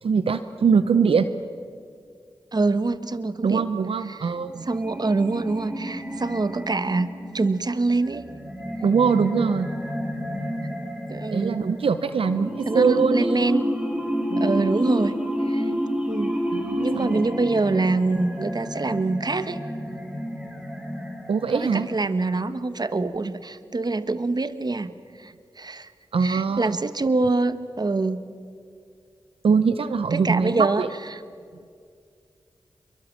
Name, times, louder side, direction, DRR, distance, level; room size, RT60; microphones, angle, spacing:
voice 1, 0.0-1.3 3.4-4.6 8.8-9.7 11.3-13.4 14.3-14.7 16.5-17.2 21.3-21.9 26.1-26.8 29.4-30.9, right 5 dB, 85° right, 12 dB, 0.7 m, -22 dB
voice 2, 2.5-3.7 4.1-4.3 4.6-8.2 11.1-11.6 12.7-13.6 14.4-15.2 15.4-15.7 16.1-16.4 16.8-19.6 21.5-24.9 25.2-25.9 26.2-28.2 30.1-30.8, right 3 dB, 50° right, 12 dB, 1.3 m, -25 dB
sound 1, 4.3-22.3, equal, 10° right, 3.8 m, -30 dB
27.0 x 23.0 x 7.4 m, 2.3 s
cardioid pair, 45°, 9 cm